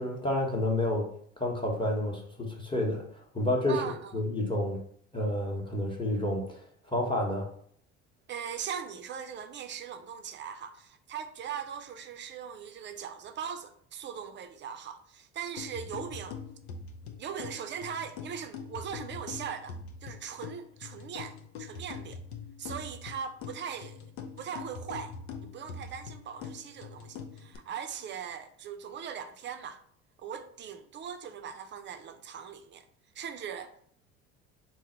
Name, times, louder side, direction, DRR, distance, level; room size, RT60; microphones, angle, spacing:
voice 1, 0.0-3.8 4.1-4.8 5.1-6.6 6.9-7.5, left 1 dB, 15° left, 1.0 m, -30 dB
voice 2, 3.7-4.2 8.3-16.4 17.2-22.2 22.6-24.1 24.4-25.1 25.4-29.8 30.2-32.9 33.2-33.7, right 7 dB, 35° right, 0.5 m, -40 dB
sound 1, 15.6-27.6, left 5 dB, 75° left, 0.6 m, -43 dB
3.7 x 2.1 x 4.3 m
hypercardioid pair, 75°, 34 cm